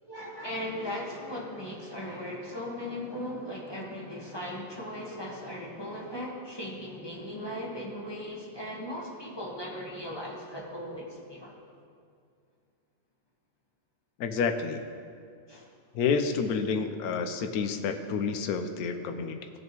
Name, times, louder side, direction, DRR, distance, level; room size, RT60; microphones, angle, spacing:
voice 1, 0.0-11.5 15.5-15.7, left 1 dB, 15° left, -4 dB, 1.3 m, -38 dB
voice 2, 14.2-14.8 15.9-19.5, left 5 dB, 70° left, 7 dB, 1.1 m, -29 dB
16.5 x 6.4 x 3.0 m, 2.3 s
omnidirectional pair, 1.7 m